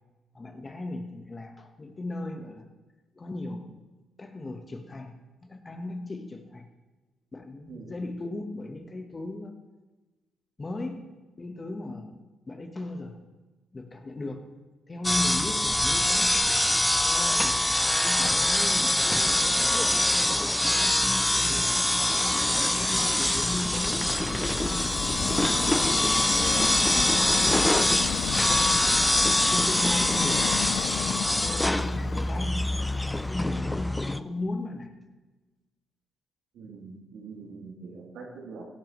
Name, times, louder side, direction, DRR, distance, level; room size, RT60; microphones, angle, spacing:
voice 1, 0.3-2.7 3.1-3.8 4.2-5.1 5.4-6.7 7.3-9.5 10.6-11.1 11.4-12.2 12.5-13.2 13.7-14.6 14.9-16.5 17.0-17.7 18.0-21.8 22.5-24.9 25.4-30.7 31.4-32.8 33.3-35.0, left 2 dB, 25° left, 6 dB, 1.2 m, -37 dB
voice 2, 7.7-8.1 36.5-38.7, right 4 dB, 80° right, -2 dB, 3.1 m, -44 dB
sound 1, 15.0-34.2, left 1 dB, 10° left, 0.4 m, -24 dB
Subway metro underground, 22.0-33.3, left 10 dB, 75° left, 0.3 m, -34 dB
16.5 x 11.0 x 3.1 m, 1.2 s
cardioid pair, 90°, 0 cm